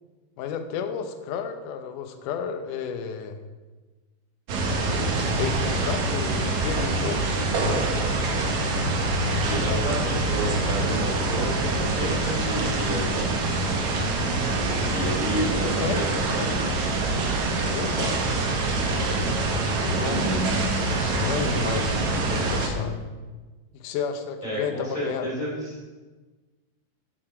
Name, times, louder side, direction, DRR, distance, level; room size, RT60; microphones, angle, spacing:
voice 1, 0.4-3.4 4.6-8.0 8.3-8.7 15.4-16.2 17.6-18.2 19.7-23.0 23.7-25.3, left 7 dB, 75° left, 6 dB, 2.0 m, -32 dB
sound 1, 4.5-22.7, right 2 dB, 60° right, 2.1 m, -25 dB
voice 2, 9.4-13.3 14.8-16.6 24.4-25.8, equal, 15° left, -5 dB, 1.9 m, -31 dB
12.5 x 8.1 x 4.3 m, 1.3 s
omnidirectional pair, 4.7 m